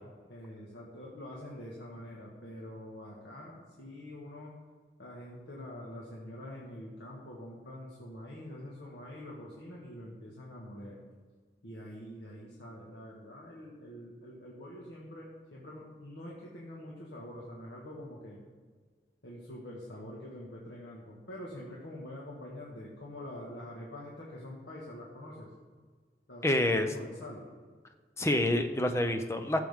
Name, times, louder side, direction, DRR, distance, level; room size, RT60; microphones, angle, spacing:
voice 1, 0.3-4.5 5.0-11.0 11.6-18.4 19.2-25.5 26.3-27.4, left 1 dB, 85° left, -4 dB, 1.7 m, -45 dB
voice 2, 26.4-26.9 28.2-29.6, left 1 dB, 15° left, 7 dB, 0.6 m, -27 dB
14.5 x 7.5 x 3.7 m, 1.5 s
head